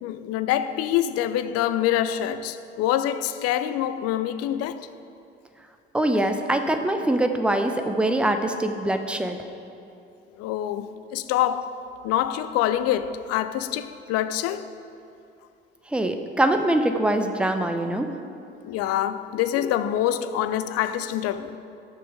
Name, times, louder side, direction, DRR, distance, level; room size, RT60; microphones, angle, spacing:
voice 1, 0.0-4.9 10.4-14.7 18.6-21.6, left 11 dB, 55° left, 0.5 m, -26 dB
voice 2, 5.9-9.4 15.9-18.1, right 1 dB, 5° right, 0.8 m, -23 dB
14.0 x 6.1 x 4.7 m
figure-of-eight pair, 50°, 30 cm